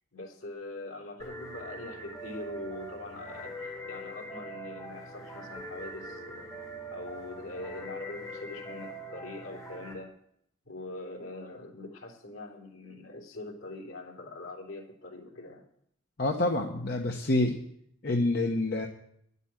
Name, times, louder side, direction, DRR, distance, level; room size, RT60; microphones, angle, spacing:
voice 1, 0.1-6.5 6.9-10.2 10.6-15.7, left 2 dB, 80° left, 0 dB, 3.4 m, -43 dB
sound 1, 1.2-9.9, right 1 dB, 20° left, 4.8 m, -42 dB
voice 2, 16.2-17.6 18.0-18.9, left 2 dB, 50° left, 1 dB, 1.1 m, -27 dB
11.0 x 8.2 x 8.9 m, 0.70 s
head